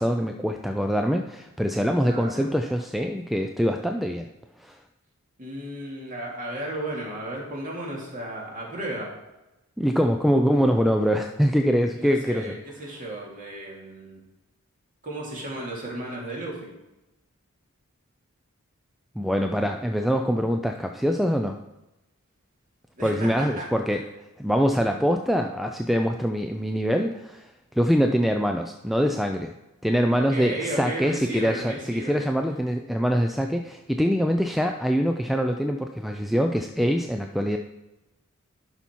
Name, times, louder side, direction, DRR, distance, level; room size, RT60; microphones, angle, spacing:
voice 1, 0.0-4.3 4.6-4.8 9.8-12.4 19.2-21.6 23.0-24.0 24.4-27.5 27.8-29.5 29.8-37.6, equal, ahead, 5 dB, 0.3 m, -24 dB
voice 2, 2.0-2.5 5.4-9.1 11.9-14.2 15.0-16.7 22.9-23.7 30.1-32.3, right 1 dB, 40° right, -2 dB, 2.5 m, -34 dB
11.5 x 5.6 x 4.5 m, 0.96 s
head